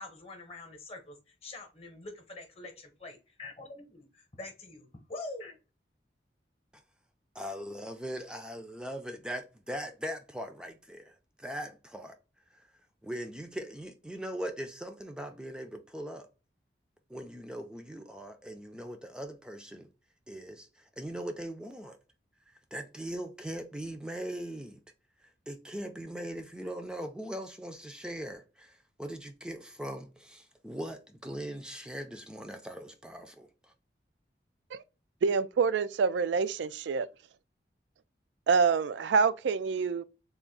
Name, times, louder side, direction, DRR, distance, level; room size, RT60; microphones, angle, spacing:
voice 1, 0.0-5.6, left 2 dB, 35° left, 0.9 m, -45 dB
voice 2, 7.3-12.2 12.5-12.7 13.0-16.3 17.1-19.9 20.3-22.0 22.5-24.8 25.5-33.7, equal, 5° right, 0.4 m, -40 dB
voice 3, 35.2-37.1 38.5-40.0, right 5 dB, 90° right, 0.3 m, -26 dB
3.6 x 2.5 x 3.8 m
head